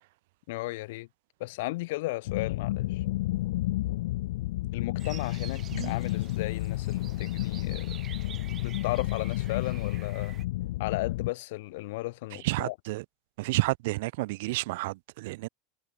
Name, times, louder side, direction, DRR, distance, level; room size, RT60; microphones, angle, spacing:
voice 1, 0.5-1.1 1.4-3.0 4.7-8.0 8.6-10.3 10.8-12.7, left 20 dB, 70° left, 0.7 m, -35 dB
sound 1, 2.3-11.3, left 17 dB, 85° left, 0.3 m, -31 dB
sound 2, 5.0-10.4, right 9 dB, 25° right, 1.5 m, -48 dB
voice 2, 12.3-13.0 13.4-15.5, right 21 dB, 70° right, 0.7 m, -30 dB
supercardioid pair, 170°, 0 cm